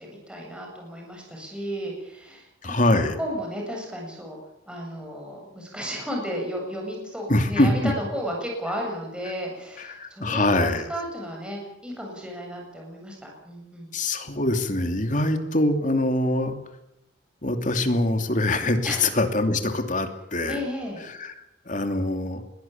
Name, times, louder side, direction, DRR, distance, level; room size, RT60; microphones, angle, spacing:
voice 1, 0.0-2.8 3.2-4.4 4.7-13.9 18.8-19.0 20.5-21.0, equal, 5° right, -1 dB, 8.0 m, -33 dB
voice 2, 2.6-3.2 7.3-7.9 9.8-10.9 13.9-16.5 17.4-20.6 21.1-22.4, left 1 dB, 45° left, 7 dB, 2.8 m, -24 dB
21.5 x 17.0 x 8.9 m, 0.84 s
head